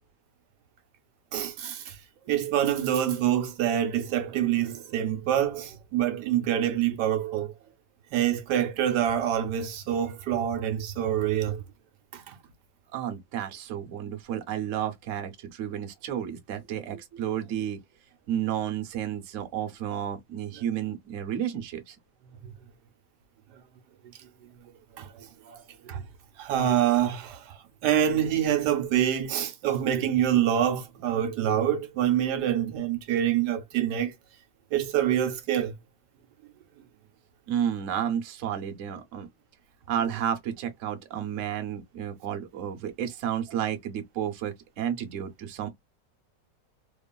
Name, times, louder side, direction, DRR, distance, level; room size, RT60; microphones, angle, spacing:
voice 1, 1.3-2.0 2.3-7.5 8.1-11.6 12.1-12.4 22.4-22.5 25.0-26.0 26.4-34.1 34.7-35.7, right 10 dB, 75° right, 1.2 m, -26 dB
voice 2, 12.9-17.8 18.3-22.0 37.5-39.3 39.9-45.7, right 9 dB, 60° right, 0.9 m, -31 dB
2.9 x 2.3 x 2.2 m
omnidirectional pair, 1.8 m